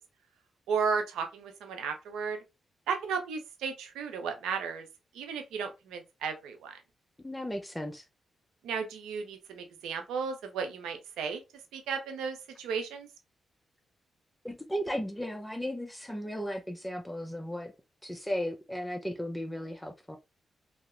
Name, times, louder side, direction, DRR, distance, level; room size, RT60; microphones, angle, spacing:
voice 1, 0.7-2.4 2.9-4.9 5.1-6.7 8.6-11.4 11.7-13.1, right 5 dB, 90° right, 0.4 m, -34 dB
voice 2, 7.2-8.0 14.4-17.7 18.0-20.2, equal, 10° left, 0.5 m, -35 dB
2.7 x 2.0 x 2.4 m
supercardioid pair, 50°, 0 cm